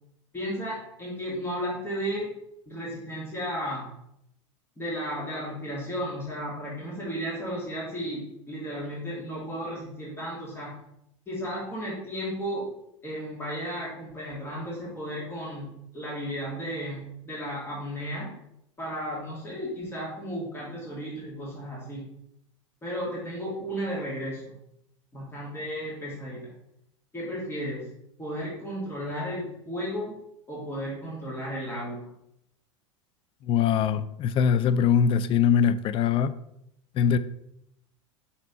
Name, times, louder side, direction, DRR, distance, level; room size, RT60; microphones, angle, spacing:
voice 1, 0.3-2.3 2.7-3.9 4.8-10.8 11.3-12.7 13.0-18.3 18.8-22.1 22.8-24.6 25.1-26.5 27.1-27.9 28.2-30.2 30.5-32.1, equal, 15° left, 2.3 m, -34 dB
voice 2, 33.5-36.3 37.0-37.2, left 7 dB, 35° left, 0.4 m, -22 dB
5.6 x 4.2 x 4.2 m
hypercardioid pair, 90°, 17 cm